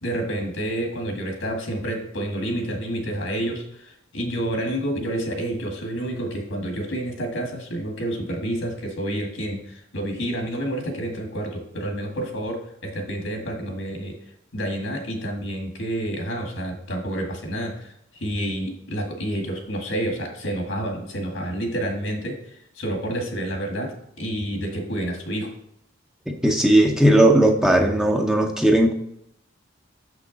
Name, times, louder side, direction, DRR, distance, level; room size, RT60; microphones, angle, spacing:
voice 1, 0.0-14.1 14.5-25.5, right 1 dB, 70° left, 2 dB, 1.9 m, -29 dB
voice 2, 26.4-28.9, right 1 dB, 5° right, 2 dB, 0.6 m, -17 dB
6.7 x 6.0 x 4.0 m, 0.73 s
head